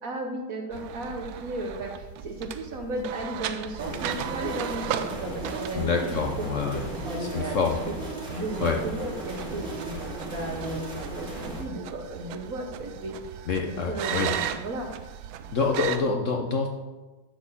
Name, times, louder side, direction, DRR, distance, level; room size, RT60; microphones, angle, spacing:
voice 1, 0.0-7.6 8.3-14.9, right 1 dB, 50° right, 3 dB, 1.2 m, -35 dB
sound 1, 0.7-16.0, right 10 dB, 75° right, 1.3 m, -37 dB
sound 2, 3.8-11.6, right 1 dB, 35° right, 2.7 m, -36 dB
voice 2, 5.7-6.8 7.3-7.8 8.6-8.8 13.5-14.3 15.5-16.7, left 5 dB, 70° left, 3 dB, 0.7 m, -26 dB
10.5 x 4.3 x 7.2 m, 1.2 s
omnidirectional pair, 2.3 m